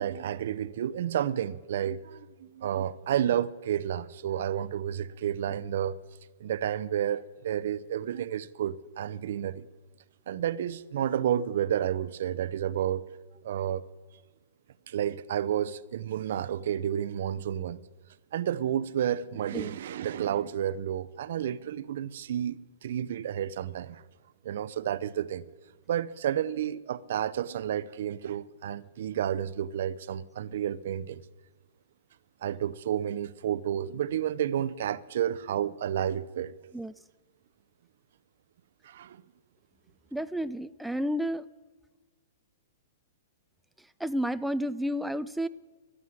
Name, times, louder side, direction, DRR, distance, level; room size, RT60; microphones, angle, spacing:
voice 1, 0.0-6.0 6.4-9.7 10.3-13.0 13.4-13.8 14.9-17.8 18.3-24.0 24.4-25.5 25.9-31.2 32.4-36.5 38.8-39.2, right 10 dB, 65° right, 0.7 m, -31 dB
voice 2, 40.1-41.5 44.0-45.5, equal, ahead, 0.4 m, -31 dB
15.0 x 11.5 x 7.5 m
hypercardioid pair, 120°, 0 cm